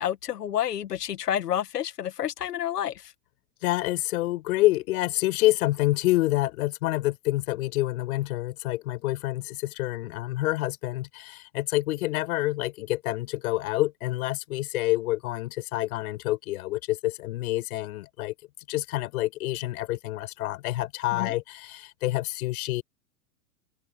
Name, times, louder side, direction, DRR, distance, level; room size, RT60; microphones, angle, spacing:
voice 1, 0.0-3.1 21.1-21.3, left 10 dB, 85° left, 2.0 m, -29 dB
voice 2, 3.6-18.3 18.7-22.8, left 17 dB, 65° left, 6.6 m, -27 dB
hypercardioid pair, 110°, 46 cm